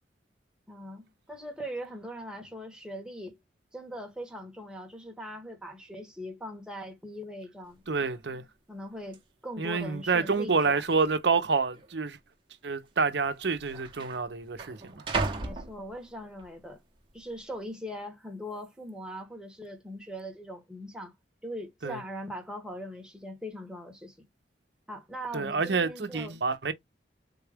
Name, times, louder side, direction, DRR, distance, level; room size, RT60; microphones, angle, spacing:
voice 1, 0.7-3.4 3.7-7.8 8.7-10.8 15.4-16.8 17.1-21.1 21.4-24.2 24.9-26.4, equal, 5° right, 1.1 m, -40 dB
sound 1, 7.7-7.8 8.0-8.4 9.1-9.2 10.0-10.5 10.8-10.9 11.7-11.9 12.9-13.0 13.2-16.4 16.9-17.4, right 3 dB, 30° right, 0.9 m, -36 dB
voice 2, 7.9-8.4 9.6-12.2 12.6-15.0 21.8-22.0 25.3-26.7, right 4 dB, 70° right, 0.7 m, -28 dB
3.7 x 2.3 x 3.3 m
head